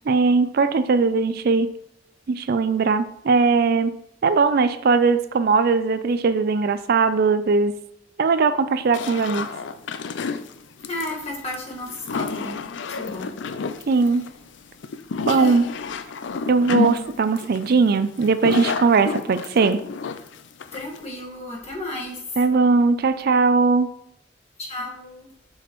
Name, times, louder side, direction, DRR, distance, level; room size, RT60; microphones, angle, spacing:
voice 1, 0.1-1.7 2.3-7.8 8.2-9.5 13.9-14.3 15.2-15.7 16.5-19.8 22.4-23.9, right 4 dB, 55° right, 0.4 m, -19 dB
sound 1, 8.9-21.1, left 5 dB, 75° left, 0.4 m, -30 dB
voice 2, 10.8-13.3 13.8-13.9 15.2-15.7 20.7-22.4 24.6-25.3, left 1 dB, 35° left, 1.6 m, -33 dB
7.4 x 6.0 x 3.1 m
head